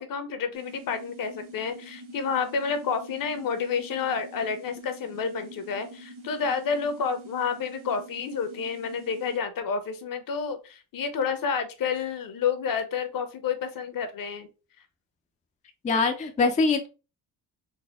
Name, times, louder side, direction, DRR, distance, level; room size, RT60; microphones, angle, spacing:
voice 1, 0.0-14.5, left 6 dB, 55° left, 9 dB, 0.8 m, -30 dB
sound 1, 0.5-9.4, right 1 dB, 50° right, 1.1 m, -46 dB
voice 2, 15.8-16.9, left 4 dB, 20° left, 5 dB, 0.4 m, -23 dB
4.1 x 2.1 x 3.4 m, 0.31 s
cardioid pair, 125°, 41 cm